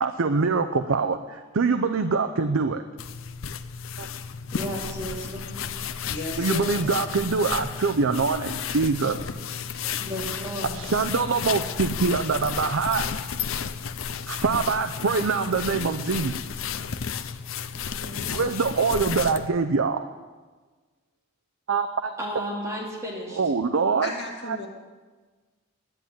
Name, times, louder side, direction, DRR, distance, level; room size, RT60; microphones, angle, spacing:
voice 1, 0.0-2.8 4.0-4.1 6.4-9.3 10.6-13.1 14.3-16.7 18.3-20.0 21.7-22.1 23.4-24.1 24.5-24.6, right 4 dB, 80° right, 7 dB, 0.6 m, -24 dB
sound 1, 3.0-19.5, left 7 dB, 80° left, 0.6 m, -33 dB
voice 2, 4.5-5.7 10.0-10.7 18.0-18.6 22.2-23.4, equal, 15° right, -3 dB, 2.3 m, -34 dB
voice 3, 6.1-6.9 24.0-24.7, left 3 dB, 55° left, 0 dB, 2.4 m, -34 dB
11.0 x 9.4 x 9.1 m, 1.3 s
head